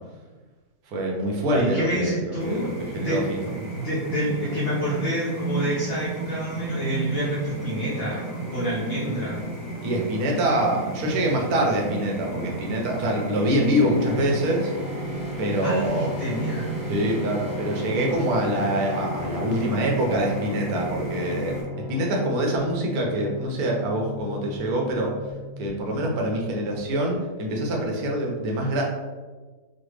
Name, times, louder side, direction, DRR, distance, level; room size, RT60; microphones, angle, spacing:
voice 1, 0.9-3.5 9.8-14.7 15.4-16.1 16.9-21.6 21.9-25.1 25.6-28.8, right 1 dB, 75° right, 0 dB, 1.1 m, -25 dB
voice 2, 1.5-3.2 3.7-9.4 15.6-16.8, equal, 55° left, -5 dB, 0.7 m, -28 dB
sound 1, 2.4-21.6, right 3 dB, 10° left, 0.9 m, -33 dB
sound 2, 13.8-27.3, left 3 dB, 40° right, 1.1 m, -36 dB
3.2 x 2.3 x 3.1 m, 1.3 s
omnidirectional pair, 1.6 m